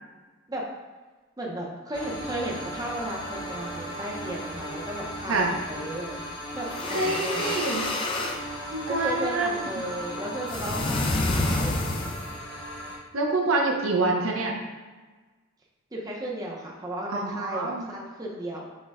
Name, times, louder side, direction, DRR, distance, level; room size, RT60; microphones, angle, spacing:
voice 1, 1.4-6.2 6.5-6.7 7.0-7.5 8.9-11.7 15.9-18.7, right 1 dB, 20° right, -3 dB, 0.6 m, -34 dB
sound 1, 1.9-13.0, equal, 60° left, 1.3 m, -37 dB
sound 2, 6.6-8.4 10.5-12.4, left 2 dB, 25° left, 0.3 m, -28 dB
voice 2, 6.9-7.9 8.7-9.7 13.1-14.5 17.1-17.9, right 3 dB, 85° right, 1 dB, 0.7 m, -26 dB
6.3 x 2.2 x 3.5 m, 1.3 s
head